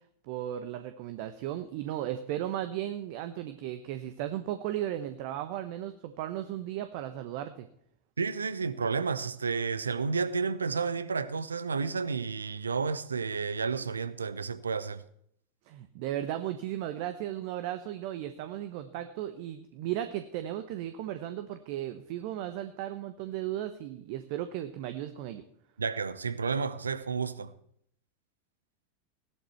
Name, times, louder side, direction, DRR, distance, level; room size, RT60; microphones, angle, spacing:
voice 1, 0.2-7.7 15.6-25.4, right 12 dB, 50° right, 1.0 m, -35 dB
voice 2, 8.2-15.0 25.8-27.5, right 5 dB, 80° right, 0.8 m, -31 dB
17.0 x 11.5 x 4.6 m
figure-of-eight pair, 90°, 0 cm